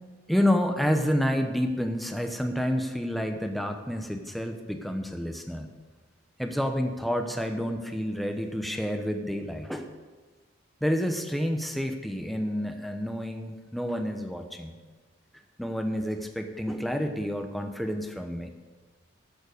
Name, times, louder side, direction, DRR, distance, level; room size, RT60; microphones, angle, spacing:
voice 1, 0.3-5.7 6.4-9.9 10.8-14.7 15.6-18.5, equal, ahead, 5 dB, 0.9 m, -29 dB
13.5 x 7.2 x 6.5 m, 1.4 s
head